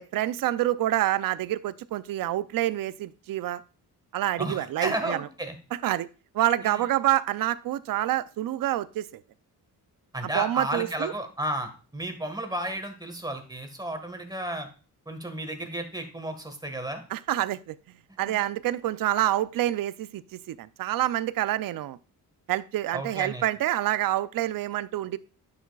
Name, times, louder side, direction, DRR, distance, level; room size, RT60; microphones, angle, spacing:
voice 1, 0.0-3.6 4.1-5.2 5.8-6.1 6.3-9.1 10.3-11.1 17.1-17.8 18.2-22.0 22.5-25.2, right 13 dB, 65° right, 16 dB, 0.5 m, -27 dB
voice 2, 4.4-5.6 6.6-6.9 10.1-14.7 15.0-17.0 18.3-18.4 22.9-23.4, right 1 dB, 10° right, 5 dB, 1.5 m, -33 dB
9.7 x 6.1 x 2.3 m, 0.36 s
cardioid pair, 95°, 36 cm